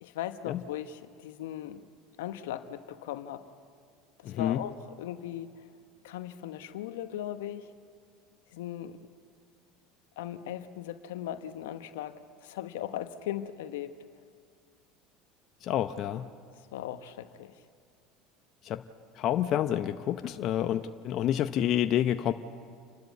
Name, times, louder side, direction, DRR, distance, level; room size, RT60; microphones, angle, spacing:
voice 1, 0.0-1.9 2.2-3.5 4.2-5.5 6.0-7.7 8.5-9.0 10.2-13.9 16.6-17.6, left 11 dB, 80° left, 10 dB, 1.0 m, -38 dB
voice 2, 4.2-4.6 15.6-16.3 18.6-18.8 19.2-22.3, left 11 dB, 50° left, 9 dB, 0.7 m, -28 dB
29.0 x 12.5 x 8.4 m, 2.2 s
hypercardioid pair, 85°, 0 cm